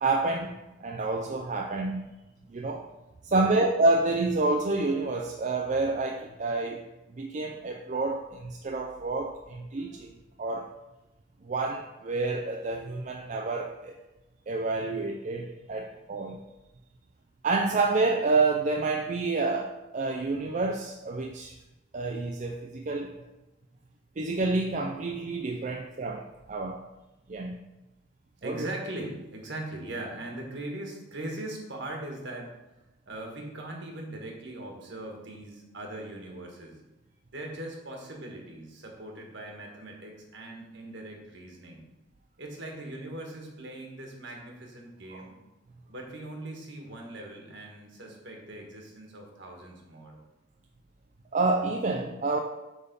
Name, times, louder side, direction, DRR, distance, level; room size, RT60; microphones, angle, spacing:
voice 1, 0.0-2.0 2.5-2.9 3.2-6.8 7.2-10.1 10.4-10.7 11.4-13.9 14.5-16.4 17.4-21.5 21.9-23.1 24.2-26.8 27.3-27.6 28.4-28.7 45.1-45.2 51.3-52.4, right 3 dB, 40° right, 2 dB, 0.4 m, -28 dB
voice 2, 28.4-32.5 33.0-36.8 37.3-41.9 42.4-45.4 45.9-50.2, right 1 dB, 60° right, 0 dB, 1.5 m, -40 dB
8.1 x 3.6 x 5.3 m, 1.0 s
head